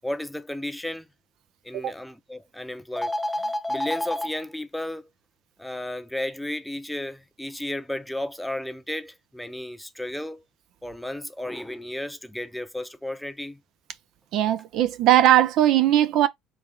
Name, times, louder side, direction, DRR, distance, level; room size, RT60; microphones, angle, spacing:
voice 1, 0.0-1.1 1.6-5.1 5.6-10.4 10.8-13.6, left 1 dB, 5° left, 0.7 m, -32 dB
voice 2, 14.3-16.3, right 12 dB, 65° right, 0.5 m, -19 dB
3.9 x 2.7 x 3.7 m
hypercardioid pair, 60°, 0 cm